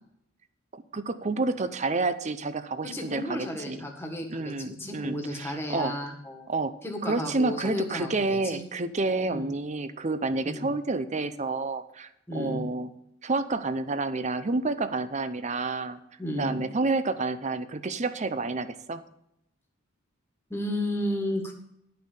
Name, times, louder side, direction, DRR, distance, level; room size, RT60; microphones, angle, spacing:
voice 1, 0.7-3.8 4.3-5.9 6.5-6.7 7.0-12.9 13.2-16.0 16.3-19.0, right 3 dB, 35° right, 11 dB, 0.7 m, -29 dB
voice 2, 2.8-6.5 6.8-8.6 9.3-9.5 10.4-10.7 12.3-12.6 16.2-16.6 20.5-21.5, left 1 dB, 10° left, 2 dB, 1.7 m, -33 dB
11.5 x 5.8 x 6.7 m, 0.77 s
head